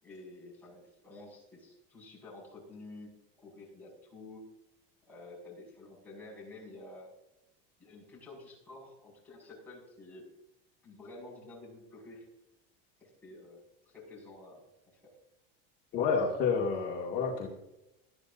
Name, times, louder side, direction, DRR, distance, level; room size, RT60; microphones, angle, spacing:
voice 1, 0.0-3.1 3.4-4.5 5.1-7.1 7.8-10.3 10.8-12.3 13.0-14.6 14.9-15.2, left 2 dB, 5° left, -5 dB, 5.4 m, -50 dB
voice 2, 15.9-17.5, left 5 dB, 35° left, -3 dB, 2.1 m, -29 dB
20.0 x 12.5 x 2.6 m, 0.90 s
cardioid pair, 175°, 29 cm